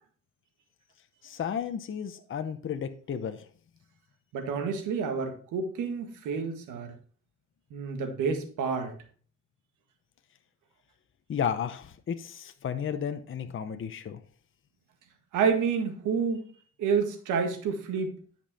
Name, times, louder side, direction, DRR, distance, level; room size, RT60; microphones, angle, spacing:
voice 1, 1.2-3.4 11.3-14.2, left 8 dB, 45° left, 0.8 m, -33 dB
voice 2, 4.3-6.9 7.7-8.9 15.3-16.4 16.8-18.1, right 5 dB, 85° right, 1.7 m, -29 dB
10.5 x 5.4 x 4.2 m
cardioid pair, 90°, 30 cm